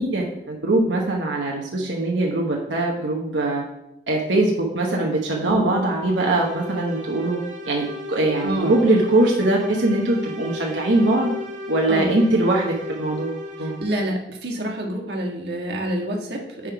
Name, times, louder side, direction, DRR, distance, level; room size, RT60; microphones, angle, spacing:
voice 1, 0.0-3.6 4.1-7.4 7.7-11.3 11.7-13.7, right 2 dB, 90° right, -1 dB, 1.0 m, -21 dB
sound 1, 5.8-14.2, left 3 dB, 45° right, 1.4 m, -35 dB
voice 2, 8.4-8.8 11.9-12.1 13.6-16.7, right 1 dB, 65° right, -1 dB, 1.5 m, -27 dB
9.6 x 3.6 x 4.7 m, 0.85 s
head